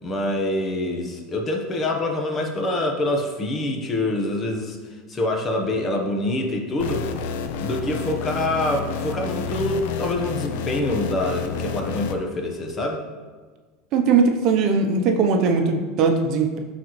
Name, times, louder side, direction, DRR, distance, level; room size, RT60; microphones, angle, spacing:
voice 1, 0.0-4.8 5.1-7.1 7.6-13.0, left 1 dB, 30° left, 3 dB, 1.1 m, -25 dB
sound 1, 6.8-12.1, left 5 dB, 75° left, 0.6 m, -30 dB
voice 2, 13.9-16.6, right 4 dB, 55° right, 4 dB, 0.8 m, -20 dB
12.0 x 4.1 x 3.2 m, 1.4 s
supercardioid pair, 115°, 0 cm